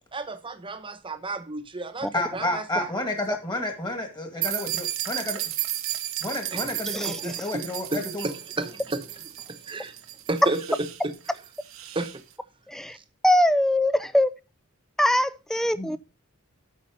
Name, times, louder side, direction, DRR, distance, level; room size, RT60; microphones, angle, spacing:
voice 1, 0.1-2.9 7.1-7.3 7.9-9.0 9.5-9.9 10.3-10.6 11.0-11.1 11.9-12.1, right 2 dB, 25° right, 1.0 m, -32 dB
voice 2, 2.1-5.4 6.2-8.3 15.8-15.9, left 1 dB, 20° left, 2.0 m, -30 dB
sound 1, 4.4-12.2, right 13 dB, 70° right, 0.9 m, -34 dB
voice 3, 12.7-13.0 13.2-14.3 15.0-16.0, left 1 dB, ahead, 0.4 m, -22 dB
8.5 x 5.6 x 5.3 m
head